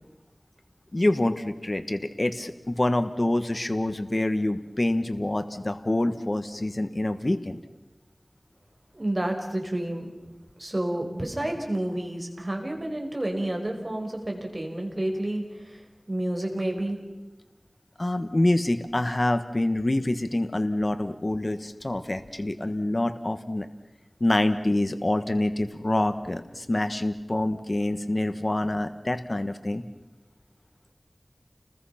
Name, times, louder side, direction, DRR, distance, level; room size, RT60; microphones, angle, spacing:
voice 1, 0.9-7.6 18.0-23.7 24.2-29.8, left 1 dB, 45° left, 8 dB, 1.3 m, -26 dB
voice 2, 8.9-10.1 10.6-17.0, right 1 dB, 40° right, 2 dB, 4.9 m, -30 dB
30.0 x 21.0 x 5.8 m, 1.1 s
wide cardioid pair, 50°, 0 cm